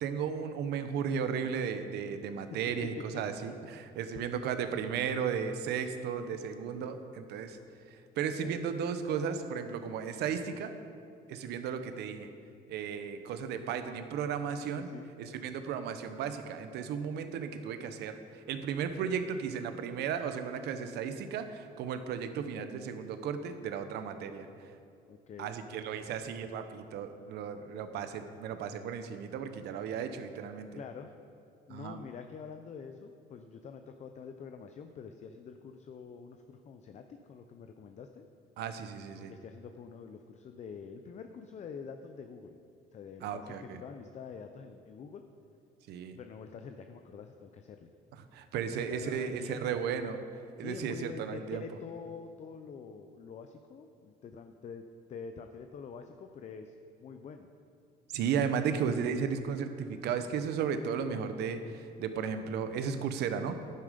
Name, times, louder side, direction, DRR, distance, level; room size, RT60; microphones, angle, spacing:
voice 1, 0.0-7.6 8.2-10.7 11.3-12.3 12.7-14.9 15.2-18.2 18.5-24.5 25.4-30.7 31.7-32.0 38.6-39.3 43.2-43.8 45.9-46.2 48.3-50.2 50.6-51.6 58.1-63.6, right 7 dB, 80° right, 9 dB, 0.9 m, -35 dB
voice 2, 3.0-3.5 4.1-4.2 8.4-8.6 14.8-15.1 25.1-25.5 30.7-31.1 31.7-38.2 39.3-42.6 42.9-45.2 46.2-47.9 48.7-49.8 50.6-56.7 57.0-57.5, left 6 dB, 45° left, 6 dB, 0.6 m, -46 dB
11.0 x 9.6 x 5.1 m, 2.5 s
cardioid pair, 110°, 17 cm